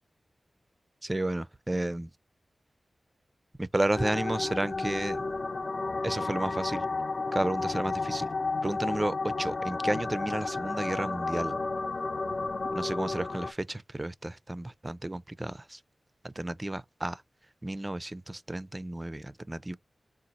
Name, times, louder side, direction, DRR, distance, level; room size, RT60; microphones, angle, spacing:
voice 1, 1.0-2.1 3.6-5.2 6.0-6.8 7.3-8.3 8.6-11.6 12.7-15.8 16.2-17.2 17.6-19.8, right 1 dB, 20° right, 0.4 m, -32 dB
sound 1, 3.9-13.5, left 3 dB, 50° left, 0.4 m, -32 dB
3.9 x 2.4 x 4.0 m
wide cardioid pair, 75°, 0 cm